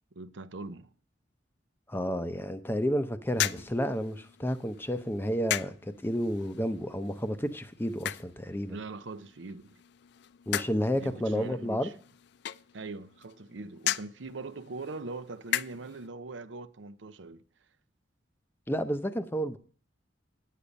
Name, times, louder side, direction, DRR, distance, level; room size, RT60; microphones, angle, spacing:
voice 1, 0.1-0.9 8.7-9.8 11.0-11.9 12.7-17.4, right 3 dB, 75° right, 0.7 m, -41 dB
voice 2, 1.9-8.8 10.5-11.9 18.7-19.6, equal, 10° left, 0.7 m, -31 dB
sound 1, 3.3-16.1, left 12 dB, 65° left, 0.4 m, -38 dB
10.0 x 8.4 x 5.2 m
head